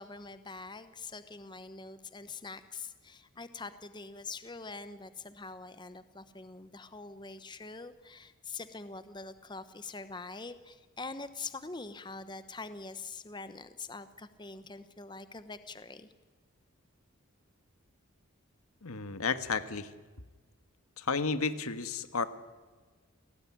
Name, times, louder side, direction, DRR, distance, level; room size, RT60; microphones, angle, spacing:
voice 1, 0.0-16.1, left 4 dB, 20° left, 12 dB, 0.9 m, -44 dB
voice 2, 18.8-19.9 21.0-22.3, left 4 dB, 85° left, 11 dB, 1.5 m, -32 dB
29.5 x 18.5 x 10.0 m, 1.4 s
head